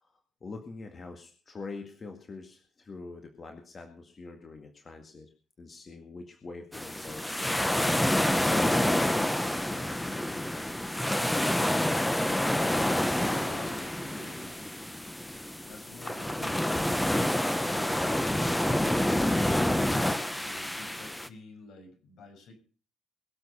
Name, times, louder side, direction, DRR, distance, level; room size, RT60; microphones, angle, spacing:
voice 1, 0.0-5.3 5.6-7.6 8.4-11.3, left 3 dB, 35° left, 4 dB, 2.0 m, -44 dB
sound 1, 6.7-21.3, left 1 dB, 5° left, 0.9 m, -28 dB
voice 2, 12.9-14.6 15.6-17.1 20.3-22.5, left 3 dB, 70° left, 4 dB, 6.2 m, -49 dB
22.5 x 7.8 x 5.5 m, 0.39 s
cardioid pair, 125°, 0 cm